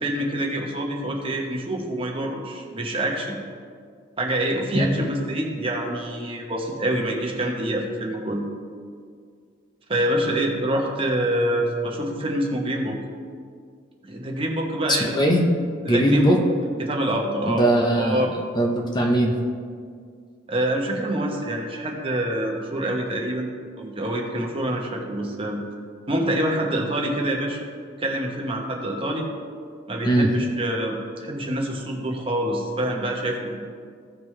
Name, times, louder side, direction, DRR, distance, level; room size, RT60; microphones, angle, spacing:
voice 1, 0.0-3.4 4.2-8.4 9.9-13.0 14.0-15.1 15.8-16.3 16.8-17.7 18.0-18.3 20.5-23.5 23.8-25.6 26.1-27.6 28.0-29.3 29.9-33.6, right 1 dB, 30° right, 0 dB, 1.1 m, -26 dB
voice 2, 14.9-15.4 15.9-16.4 17.4-18.3 18.6-19.4 30.0-30.3, right 1 dB, 20° left, 1 dB, 0.8 m, -20 dB
15.0 x 5.3 x 3.2 m, 2.1 s
head